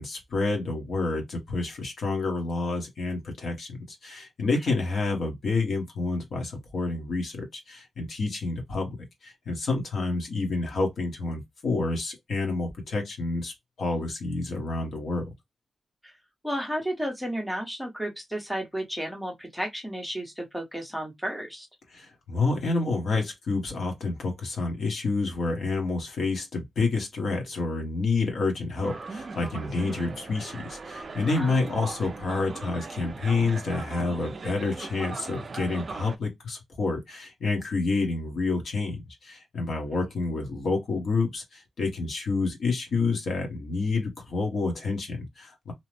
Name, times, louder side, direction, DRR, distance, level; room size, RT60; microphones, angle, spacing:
voice 1, 0.0-9.0 9.2-15.3 21.9-45.7, left 3 dB, 60° left, 1.0 m, -29 dB
voice 2, 16.4-21.7 31.4-31.5, equal, ahead, 0.8 m, -33 dB
sound 1, 28.8-36.2, right 4 dB, 35° right, 0.3 m, -39 dB
2.8 x 2.0 x 3.1 m
wide cardioid pair, 180°, 0 cm